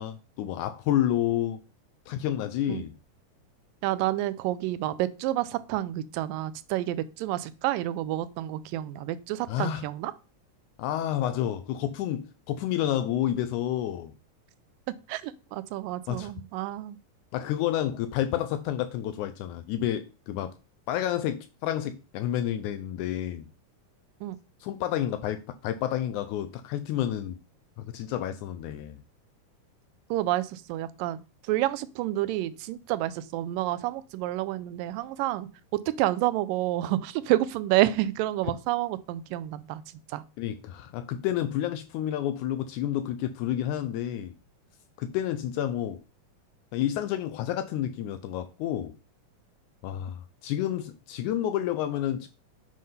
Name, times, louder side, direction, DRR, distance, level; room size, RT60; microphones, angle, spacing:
voice 1, 0.0-1.6 2.1-2.9 9.5-9.9 10.8-14.1 16.1-16.3 17.3-20.5 20.9-23.5 24.6-25.4 25.6-27.4 27.8-29.0 40.4-44.3 45.0-46.0 46.7-48.9 49.8-52.3, left 11 dB, 80° left, 1.8 m, -30 dB
voice 2, 3.8-10.1 15.1-17.0 24.2-24.4 30.1-39.8 40.1-40.2, right 15 dB, 90° right, 2.3 m, -29 dB
7.7 x 3.7 x 5.5 m
omnidirectional pair, 3.8 m